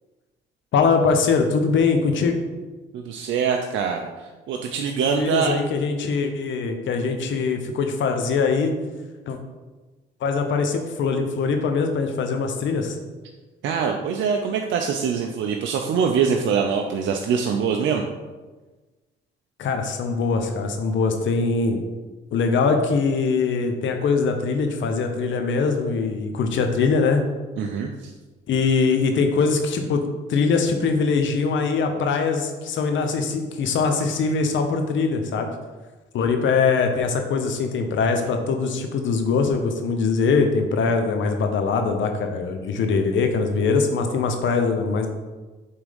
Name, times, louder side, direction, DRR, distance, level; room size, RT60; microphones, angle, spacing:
voice 1, 0.7-2.3 5.2-8.7 9.3-9.4 10.2-12.9 19.6-21.8 22.3-27.2 28.5-30.0 30.3-35.5 36.1-45.1, left 4 dB, 70° left, 5 dB, 1.0 m, -22 dB
voice 2, 2.9-5.6 13.6-18.0 27.6-28.1, right 6 dB, 70° right, 3 dB, 0.6 m, -24 dB
6.8 x 3.6 x 5.2 m, 1.2 s
cardioid pair, 90°, 20 cm